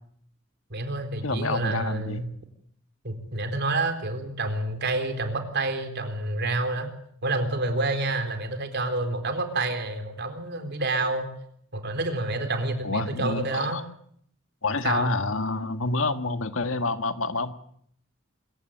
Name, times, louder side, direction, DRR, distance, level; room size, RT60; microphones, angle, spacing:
voice 1, 0.7-2.3 3.0-6.9 7.2-11.3 11.7-13.8 14.8-15.1, right 2 dB, 55° right, 6 dB, 3.9 m, -28 dB
voice 2, 1.2-2.2 12.8-13.8 14.6-17.5, left 3 dB, 70° left, 9 dB, 1.6 m, -28 dB
25.5 x 15.5 x 8.9 m, 0.66 s
head